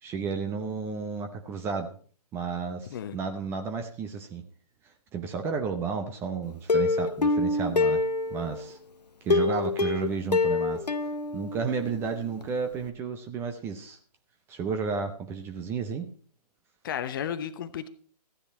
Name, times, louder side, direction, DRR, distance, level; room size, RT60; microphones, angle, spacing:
voice 1, 0.0-1.9 2.3-4.4 5.1-8.0 8.3-8.8 9.2-10.8 11.3-14.0 14.5-16.1, right 5 dB, 10° right, 6 dB, 0.7 m, -32 dB
Plucked string instrument, 6.7-8.7 9.3-12.1 12.4-12.5 12.9-13.0, left 3 dB, 80° left, 0.9 m, -26 dB
voice 2, 16.8-17.9, left 9 dB, 30° left, 12 dB, 0.8 m, -33 dB
14.5 x 10.0 x 4.3 m, 0.44 s
figure-of-eight pair, 135°, 21 cm